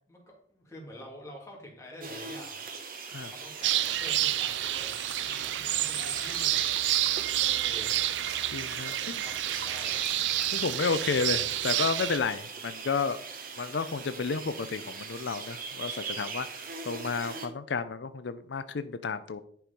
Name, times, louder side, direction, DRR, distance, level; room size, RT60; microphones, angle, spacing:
voice 1, 0.1-2.6 3.1-4.9 5.5-6.7 7.4-8.1 8.9-10.0, left 1 dB, 15° left, -1 dB, 2.4 m, -47 dB
sound 1, 2.0-17.5, right 5 dB, 50° right, 1.3 m, -40 dB
sound 2, 3.6-12.2, right 13 dB, 85° right, 0.4 m, -29 dB
voice 2, 8.5-9.2 10.5-13.2 13.6-19.4, left 5 dB, 80° left, 11 dB, 0.5 m, -32 dB
10.5 x 4.6 x 5.2 m, 0.63 s
head